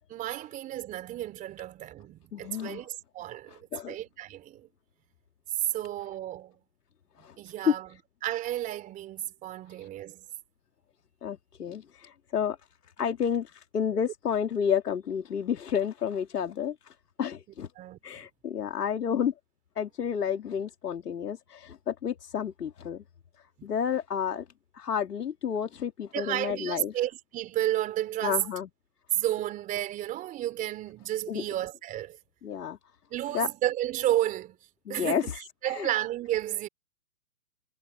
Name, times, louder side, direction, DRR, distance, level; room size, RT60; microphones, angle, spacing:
voice 1, 0.1-4.7 5.7-6.5 7.4-7.9 8.2-10.3 17.8-18.0 26.1-28.5 29.1-32.2 33.1-34.6 34.9-36.7, right 13 dB, 15° right, 3.7 m, -32 dB
voice 2, 2.3-2.8 3.7-4.0 7.2-7.4 7.6-7.8 9.8-9.9 11.2-12.6 13.0-17.7 18.0-19.3 19.8-23.0 23.4-24.5 24.7-26.9 28.2-28.7 31.3-31.4 32.4-32.8 33.3-33.5 34.9-35.3 35.6-35.9, left 8 dB, 70° left, 2.6 m, -30 dB
hypercardioid pair, 150°, 49 cm